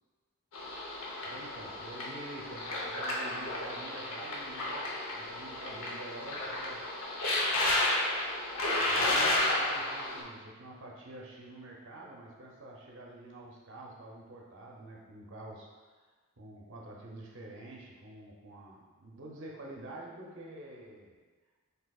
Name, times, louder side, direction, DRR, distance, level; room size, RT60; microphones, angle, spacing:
sound 1, 0.5-10.2, left 1 dB, 65° left, 0.8 m, -32 dB
voice 1, 1.2-6.9 8.8-15.9 16.4-21.2, right 1 dB, 55° right, -2 dB, 0.6 m, -47 dB
6.2 x 2.7 x 2.3 m, 1.4 s
head